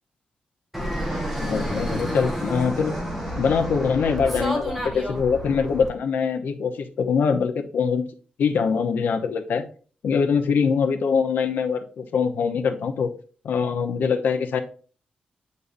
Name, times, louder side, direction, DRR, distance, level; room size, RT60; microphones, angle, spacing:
Fixed-wing aircraft airplane, 0.7-5.9, equal, ahead, 1.4 m, -29 dB
voice 1, 1.4-2.9 3.4-8.0 8.4-9.6 10.0-13.1 13.4-14.6, left 6 dB, 90° left, 6 dB, 0.9 m, -23 dB
8.5 x 5.4 x 2.6 m, 0.39 s
wide cardioid pair, 175°, 3 cm